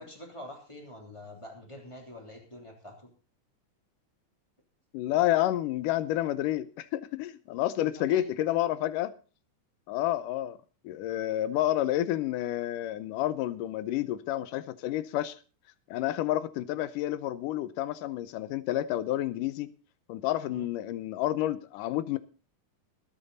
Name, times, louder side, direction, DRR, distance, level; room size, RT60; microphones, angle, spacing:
voice 1, 0.0-3.1 7.8-8.3 20.5-20.7, left 1 dB, 10° left, 3.0 m, -45 dB
voice 2, 4.9-9.1 9.9-10.6 10.8-15.4 15.9-19.7 20.1-22.2, left 14 dB, 90° left, 2.4 m, -29 dB
20.5 x 9.0 x 4.1 m
omnidirectional pair, 3.6 m